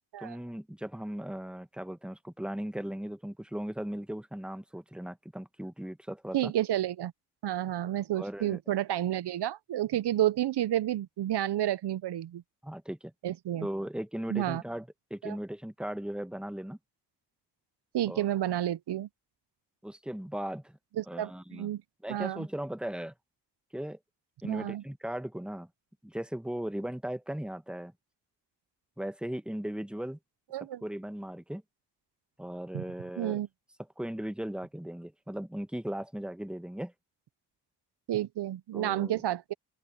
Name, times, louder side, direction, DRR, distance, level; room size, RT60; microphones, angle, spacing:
voice 1, 0.2-6.5 8.1-8.6 12.6-13.1 13.6-16.8 18.1-18.2 19.8-20.8 21.1-21.7 22.0-23.1 23.7-24.0 24.4-25.7 26.0-27.9 29.0-30.2 30.8-31.6 32.4-33.4 34.0-36.9 38.7-39.2, right 1 dB, ahead, 1.6 m, -37 dB
voice 2, 6.3-7.1 7.4-12.4 13.2-13.7 14.3-14.6 15.2-15.4 17.9-19.1 21.0-21.8 22.1-22.4 24.4-24.8 30.5-30.8 32.7-32.8 33.2-33.5 38.1-39.5, right 12 dB, 65° right, 0.9 m, -30 dB
open air
supercardioid pair, 40°, 44 cm